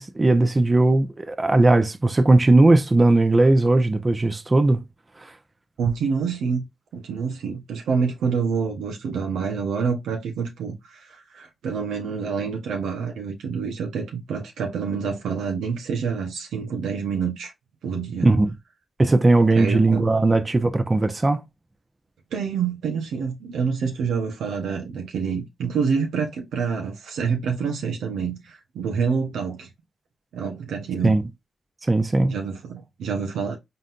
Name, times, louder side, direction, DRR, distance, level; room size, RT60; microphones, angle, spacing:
voice 1, 0.0-4.8 5.2-5.3 18.2-18.5 19.0-21.4 31.0-31.2 31.9-32.3, right 2 dB, 30° right, 0.9 m, -18 dB
voice 2, 5.8-6.7 6.9-17.5 17.8-18.3 19.6-20.1 22.3-29.7 30.3-31.2 32.3-33.6, right 6 dB, 85° right, 0.9 m, -27 dB
4.0 x 3.9 x 2.5 m
supercardioid pair, 50°, 0 cm